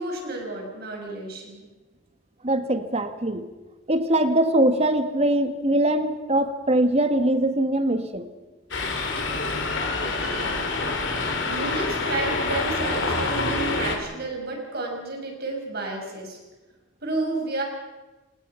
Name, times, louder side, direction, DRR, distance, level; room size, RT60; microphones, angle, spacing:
voice 1, 0.0-1.7 10.0-10.6 11.4-16.4 17.0-17.6, right 2 dB, 55° right, 2 dB, 6.3 m, -31 dB
voice 2, 2.4-3.4 3.9-8.3, right 1 dB, 35° right, 8 dB, 1.8 m, -22 dB
sound 1, 8.7-14.0, left 3 dB, 70° left, 3.7 m, -26 dB
28.0 x 20.0 x 5.9 m, 1.2 s
head